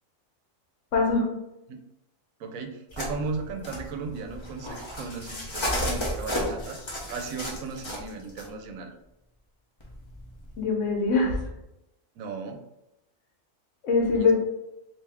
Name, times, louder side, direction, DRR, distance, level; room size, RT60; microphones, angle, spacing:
voice 1, 0.9-1.2 10.6-11.4 13.8-14.3, left 4 dB, 65° left, -1 dB, 1.2 m, -22 dB
voice 2, 2.4-6.8 7.1-8.9 12.2-12.6 14.2-14.3, right 4 dB, 80° right, 5 dB, 1.0 m, -36 dB
sound 1, 2.9-8.5 9.8-10.6, equal, 30° left, 0.6 m, -33 dB
3.3 x 2.7 x 3.4 m, 0.88 s
omnidirectional pair, 1.4 m